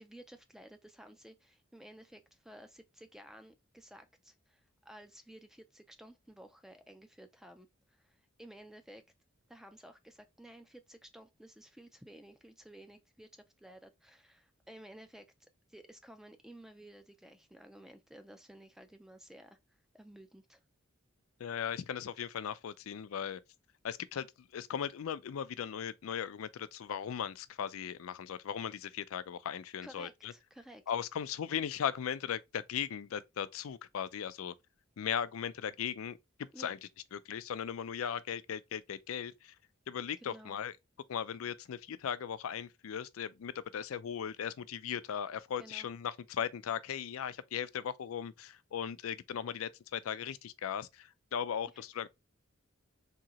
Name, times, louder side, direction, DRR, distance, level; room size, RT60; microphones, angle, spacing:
voice 1, 0.0-9.0 9.5-15.3 15.7-20.6 29.8-30.8 36.5-36.7 40.2-40.6 45.6-45.9 51.7-51.8, right 1 dB, ahead, 0.3 m, -54 dB
voice 2, 21.4-23.4 23.8-24.3 24.5-30.3 30.9-34.5 35.0-36.8 37.1-39.5 39.9-40.7 41.1-52.1, left 8 dB, 85° left, 0.4 m, -38 dB
3.7 x 2.8 x 2.8 m
head